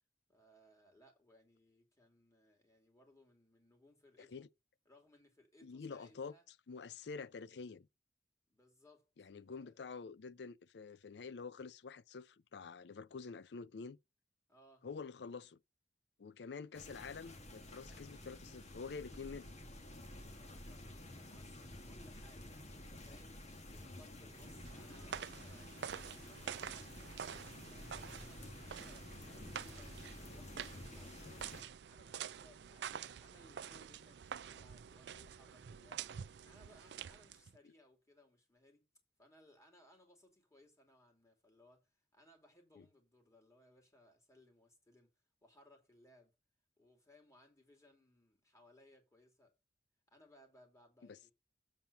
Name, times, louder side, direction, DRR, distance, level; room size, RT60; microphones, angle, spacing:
voice 1, 0.3-4.5 4.8-6.4 7.6-7.8 8.5-9.1 9.5-9.8 14.5-14.9 20.1-27.2 27.7-31.5 31.9-36.1 36.4-38.8 39.2-45.1 45.4-46.3 46.8-49.6 50.1-51.3, left 1 dB, 20° left, 2.7 m, -66 dB
voice 2, 5.6-6.3 6.7-7.9 9.2-14.0 14.8-15.6 16.2-19.5 31.1-31.6 42.8-42.9 51.0-51.2, left 5 dB, 70° left, 0.5 m, -48 dB
sound 1, 16.7-31.6, left 1 dB, 40° left, 1.8 m, -51 dB
sound 2, 24.3-37.6, right 8 dB, 70° right, 0.4 m, -48 dB
7.6 x 4.2 x 6.9 m
head